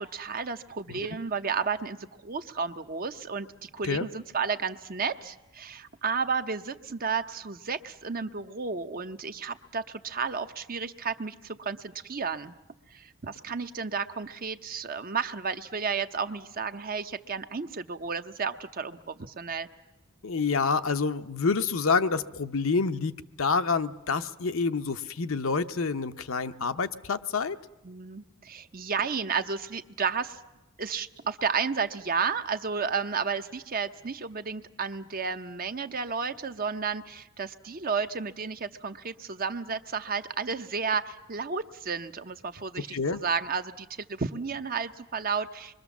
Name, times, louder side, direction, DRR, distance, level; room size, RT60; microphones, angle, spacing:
voice 1, 0.0-12.5 12.9-19.7 27.8-30.4 30.8-45.7, right 5 dB, 45° right, 9 dB, 0.8 m, -32 dB
voice 2, 20.2-23.1 23.4-27.6 42.9-43.2, left 4 dB, 70° left, 9 dB, 0.8 m, -27 dB
26.0 x 22.5 x 7.2 m, 1.0 s
head